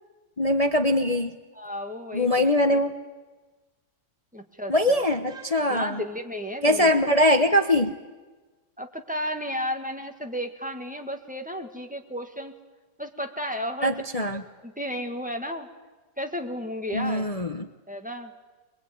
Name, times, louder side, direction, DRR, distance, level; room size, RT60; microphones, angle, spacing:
voice 1, 0.4-1.4 2.1-2.9 4.7-6.0 6.6-7.9 13.8-14.4 16.9-17.7, left 1 dB, 35° left, 7 dB, 0.5 m, -22 dB
voice 2, 1.5-2.8 4.3-5.0 5.7-6.9 8.8-12.6 13.0-13.9 14.3-15.7 16.2-17.3 17.9-18.3, equal, 5° right, 5 dB, 1.5 m, -33 dB
22.5 x 22.5 x 9.4 m, 1.3 s
omnidirectional pair, 2.3 m